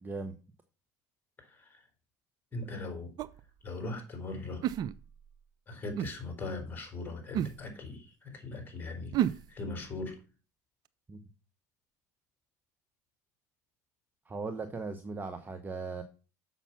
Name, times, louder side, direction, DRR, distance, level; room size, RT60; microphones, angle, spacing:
voice 1, 0.0-0.4 11.1-11.2 14.3-16.0, right 3 dB, 20° right, 1.0 m, -38 dB
voice 2, 1.5-1.8 2.5-3.1 3.6-4.6 5.7-10.2, left 2 dB, 20° left, 3.8 m, -40 dB
sound 1, 3.2-3.4 4.6-5.3 6.0-6.1 7.3-7.6 9.1-9.4, right 11 dB, 50° right, 0.5 m, -30 dB
7.0 x 5.8 x 5.8 m
hypercardioid pair, 70°, 9 cm